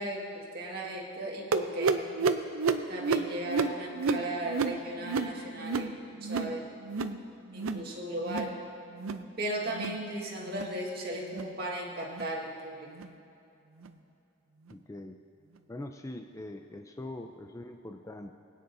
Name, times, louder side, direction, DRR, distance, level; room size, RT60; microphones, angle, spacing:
voice 1, 0.0-2.2 2.9-6.7 7.5-8.6 9.4-12.9, right 1 dB, 50° right, -2 dB, 1.8 m, -36 dB
sound 1, 1.5-6.6 6.8-7.2 7.5-7.9 8.2-8.6 8.9-9.3 9.7-10.0 10.5-10.8 11.3-11.5 12.1-12.3 12.9-13.1 13.8-13.9 14.7-14.8, right 4 dB, 85° right, 0.5 m, -31 dB
voice 2, 14.7-15.2 15.7-18.3, left 1 dB, 15° left, 5 dB, 0.4 m, -42 dB
21.5 x 9.4 x 2.7 m, 2.7 s
head